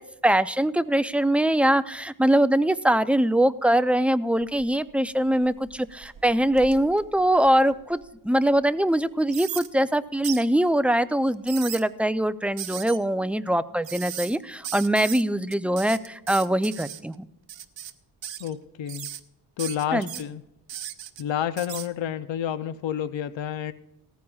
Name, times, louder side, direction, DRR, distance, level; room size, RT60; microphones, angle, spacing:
voice 1, 0.0-17.2 19.9-20.1, right 1 dB, 5° right, 12 dB, 0.4 m, -23 dB
sound 1, 4.4-4.9 5.3-8.0 8.5-8.6 9.3-9.7 10.2-10.5 11.3-11.8 12.6-13.0 13.8-14.4 14.6-15.2 15.5-17.0 17.5-17.9 18.2-18.5 18.9-19.2 19.6-20.2 20.7-21.2 21.6-21.9, right 10 dB, 90° right, 0.8 m, -37 dB
voice 2, 18.4-19.1 19.6-20.4 21.2-23.7, left 10 dB, 85° left, 12 dB, 0.6 m, -29 dB
18.0 x 14.5 x 2.3 m, 0.87 s
cardioid pair, 80°, 44 cm